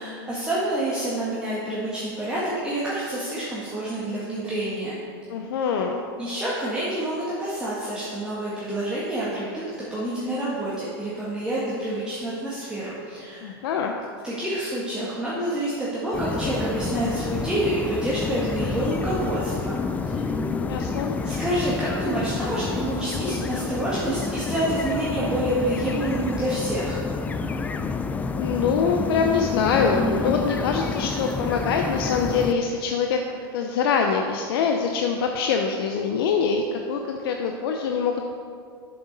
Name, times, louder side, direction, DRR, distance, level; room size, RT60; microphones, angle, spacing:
voice 1, 0.0-5.0 6.2-9.6 9.9-13.5 14.2-19.7 20.1-20.3 21.2-27.0, right 1 dB, 5° right, -9 dB, 1.7 m, -28 dB
voice 2, 5.3-6.0 13.4-13.9 20.7-21.2 28.4-33.2 33.5-38.3, left 5 dB, 70° left, 3 dB, 0.7 m, -24 dB
sound 1, 16.1-32.5, left 4 dB, 10° left, 0.4 m, -29 dB
7.9 x 6.9 x 5.3 m, 2.3 s
supercardioid pair, 130°, 13 cm